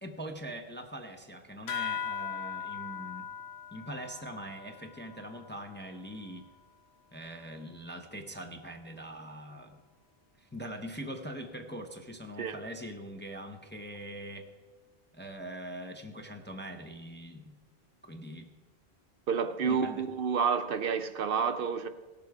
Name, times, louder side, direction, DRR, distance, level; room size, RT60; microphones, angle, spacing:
voice 1, 0.0-3.3 3.7-6.5 7.1-9.8 10.4-14.5 15.1-17.5 18.0-18.5 19.6-20.0, equal, 15° left, 0.6 m, -42 dB
sound 1, 1.7-6.6, left 7 dB, 85° left, 1.0 m, -40 dB
voice 2, 19.3-21.9, right 6 dB, 65° right, 0.8 m, -29 dB
17.0 x 6.9 x 4.7 m
omnidirectional pair, 1.1 m